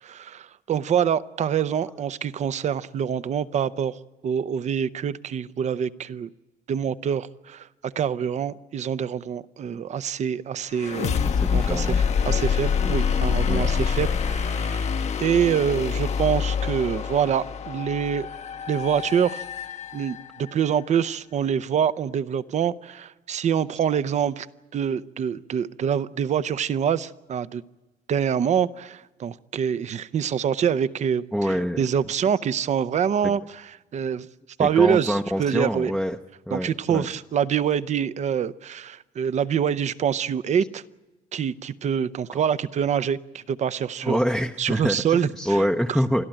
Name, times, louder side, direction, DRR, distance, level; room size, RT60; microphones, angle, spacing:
voice 1, 0.0-6.3 6.7-11.2 11.5-14.9 15.2-18.3 18.7-19.4 19.9-24.5 24.7-27.6 28.1-33.4 33.9-34.3 34.6-35.9 36.5-40.8 41.3-44.2 44.6-45.6, right 8 dB, 45° right, 16 dB, 0.7 m, -25 dB
sound 1, 10.7-20.5, left 6 dB, 40° left, 0.9 m, -26 dB
voice 2, 11.2-12.0 12.8-13.0 13.5-13.8 31.3-31.8 33.2-33.3 34.6-36.2 36.5-37.1 44.0-46.2, equal, ahead, 3 dB, 0.7 m, -26 dB
29.5 x 12.5 x 8.9 m, 1.1 s
cardioid pair, 110°, 17 cm